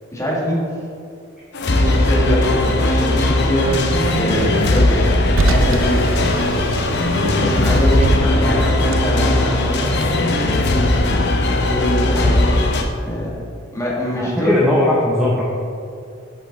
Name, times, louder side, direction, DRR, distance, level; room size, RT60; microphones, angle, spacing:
voice 1, 0.1-0.6 1.7-6.0 7.2-10.8 11.8-12.4 13.1-13.3 13.7-14.5, equal, 15° left, -6 dB, 1.9 m, -24 dB
sound 1, 1.5-12.8, left 2 dB, 60° left, 0.7 m, -18 dB
Car, 2.4-10.1, right 3 dB, 80° right, 0.5 m, -26 dB
voice 2, 8.3-8.7 14.1-15.4, left 1 dB, ahead, -6 dB, 0.8 m, -19 dB
7.9 x 5.5 x 3.9 m, 2.4 s
head